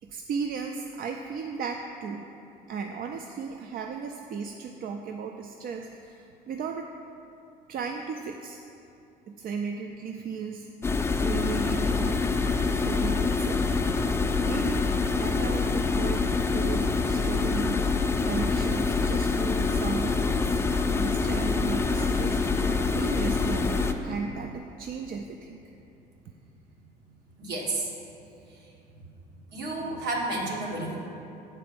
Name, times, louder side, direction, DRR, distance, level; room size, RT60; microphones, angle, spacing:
voice 1, 0.0-2.3 2.7-6.9 7.7-8.6 9.3-10.7 11.2-12.2 12.7-13.7 14.4-17.8 18.2-20.6 21.0-25.7, right 5 dB, 60° right, 4 dB, 0.5 m, -35 dB
sound 1, 10.8-23.9, left 4 dB, 15° left, 0.4 m, -25 dB
voice 2, 27.4-27.9 29.5-31.0, right 2 dB, 80° right, -2 dB, 1.7 m, -31 dB
7.9 x 4.4 x 6.8 m, 2.8 s
cardioid pair, 110°, 17 cm